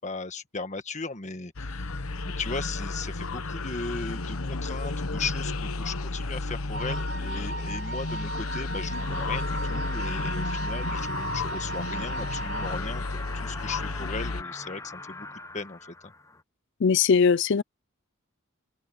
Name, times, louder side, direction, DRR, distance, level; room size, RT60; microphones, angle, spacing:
voice 1, 0.0-16.1, left 4 dB, 35° left, 1.5 m, -37 dB
sound 1, 1.6-14.4, left 3 dB, 80° left, 1.2 m, -32 dB
Wind instrument woodwind instrument, 6.7-12.8, right 3 dB, 55° right, 4.3 m, -37 dB
sound 2, 8.9-16.4, left 3 dB, 15° left, 0.6 m, -41 dB
voice 2, 16.8-17.6, left 6 dB, 55° left, 0.5 m, -20 dB
head